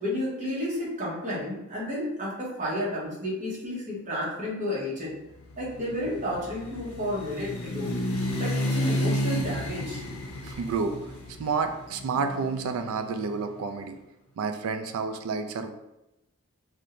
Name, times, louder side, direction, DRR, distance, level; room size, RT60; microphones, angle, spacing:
voice 1, 0.0-5.1 5.6-7.9 8.4-10.0, left 1 dB, 35° right, -6 dB, 0.8 m, -31 dB
sound 1, 5.5-13.5, equal, 85° left, 0.5 m, -32 dB
voice 2, 10.4-11.0 11.4-14.0 14.4-15.7, right 5 dB, 75° right, 8 dB, 0.3 m, -30 dB
2.5 x 2.1 x 2.9 m, 0.93 s
head